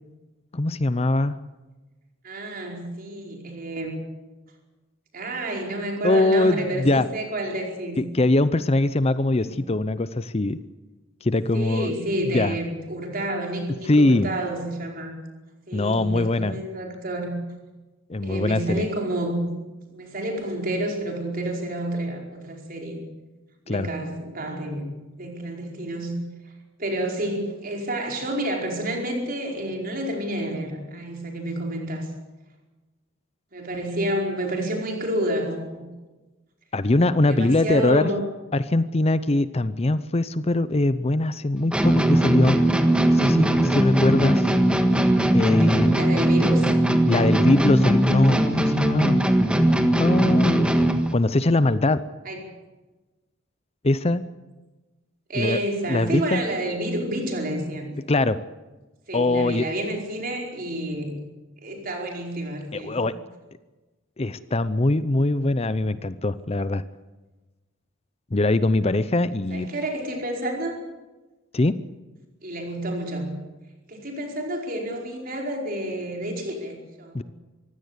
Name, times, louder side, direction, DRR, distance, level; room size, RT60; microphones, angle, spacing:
voice 1, 0.5-1.4 6.0-7.1 8.0-10.6 11.2-11.9 12.3-12.6 13.9-14.3 15.7-16.6 18.1-18.9 23.7-23.9 36.7-38.1 38.5-42.6 43.1-44.5 45.3-46.0 47.1-49.2 50.0-50.7 51.1-52.0 53.8-54.2 55.4-55.6 55.9-56.4 58.1-58.4 59.1-59.6 62.7-63.1 64.2-66.8 68.3-69.7 71.5-71.8 77.1-77.2, left 2 dB, 30° left, 14 dB, 0.6 m, -22 dB
voice 2, 2.2-4.0 5.1-8.0 9.3-9.6 11.5-15.1 15.7-17.3 18.2-19.5 19.8-23.0 23.7-24.8 25.2-26.1 26.8-32.1 33.5-35.9 37.3-38.2 45.6-46.7 52.2-52.4 55.3-57.9 59.1-61.2 61.6-63.0 69.5-70.7 72.4-73.3 73.9-77.2, right 1 dB, 45° right, 1 dB, 5.0 m, -29 dB
sound 1, 41.7-51.1, right 1 dB, 5° right, 1.6 m, -20 dB
24.0 x 16.0 x 8.3 m, 1.2 s
head